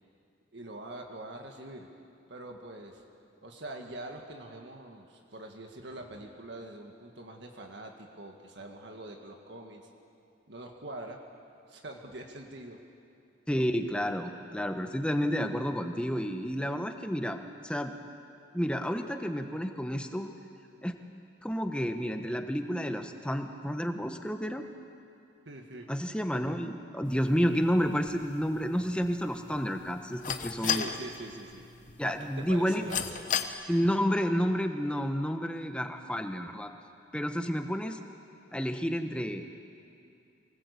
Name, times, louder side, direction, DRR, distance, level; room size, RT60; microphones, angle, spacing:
voice 1, 0.5-1.9 2.3-3.0 3.4-9.8 10.5-11.2 11.7-12.8 25.5-25.9 30.5-31.7 32.0-33.1, right 2 dB, 60° right, 2 dB, 1.9 m, -43 dB
voice 2, 13.5-17.9 18.5-20.3 20.8-20.9 21.4-24.6 25.9-30.9 32.0-32.9 33.7-36.7 37.1-38.0 38.5-39.5, equal, 5° left, 6 dB, 1.1 m, -30 dB
sound 1, 27.0-33.5, left 8 dB, 40° left, 0.9 m, -37 dB
24.0 x 19.0 x 8.4 m, 2.5 s
head